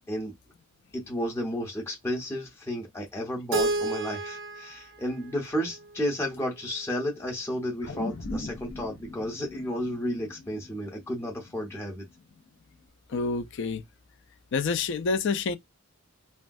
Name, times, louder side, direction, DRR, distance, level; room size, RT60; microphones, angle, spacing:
voice 1, 0.9-12.1, equal, 10° left, 0.6 m, -32 dB
Keyboard (musical), 3.5-6.4, right 3 dB, 60° right, 0.5 m, -32 dB
sound 1, 7.8-12.3 12.7-12.8, left 1 dB, 90° left, 0.8 m, -40 dB
voice 2, 13.1-13.8 14.5-15.6, left 4 dB, 60° left, 0.4 m, -27 dB
3.1 x 2.3 x 2.5 m
head